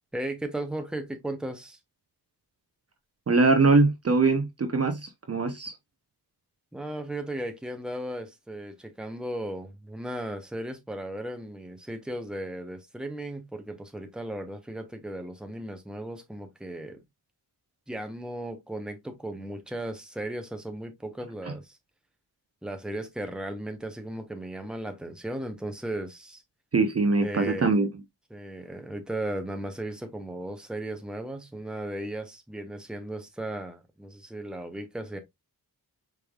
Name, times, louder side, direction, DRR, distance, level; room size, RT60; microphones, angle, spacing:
voice 1, 0.1-1.8 6.7-17.0 17.9-21.8 22.6-26.4 27.2-27.8 28.3-35.2, right 1 dB, ahead, 0.9 m, -36 dB
voice 2, 3.3-5.7 26.7-27.9, right 3 dB, 35° right, 0.7 m, -22 dB
5.0 x 3.4 x 2.3 m
wide cardioid pair, 80°, 40 cm